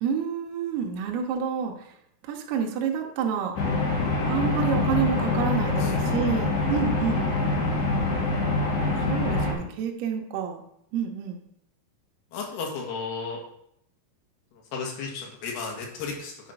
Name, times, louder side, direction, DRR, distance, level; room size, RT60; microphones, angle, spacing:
voice 1, 0.0-1.9 2.2-3.6 4.3-7.3 9.1-10.6 10.9-11.4, right 7 dB, 75° right, 1 dB, 2.7 m, -28 dB
sound 1, 3.6-9.5, left 3 dB, 50° left, 3.0 m, -25 dB
voice 2, 12.3-13.4 14.7-16.3, left 4 dB, 65° left, 0 dB, 3.3 m, -33 dB
8.5 x 5.1 x 5.5 m, 0.73 s
omnidirectional pair, 5.2 m